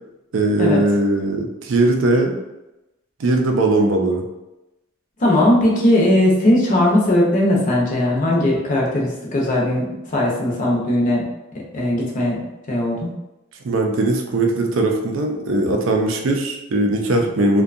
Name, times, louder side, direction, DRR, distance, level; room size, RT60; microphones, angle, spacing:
voice 1, 0.3-2.3 3.2-4.2 13.6-17.6, right 2 dB, 65° right, 2 dB, 0.4 m, -19 dB
voice 2, 5.2-9.9 10.1-11.2 11.7-12.4 12.7-13.1, left 1 dB, 40° left, -3 dB, 0.6 m, -18 dB
2.6 x 2.2 x 2.4 m, 0.97 s
head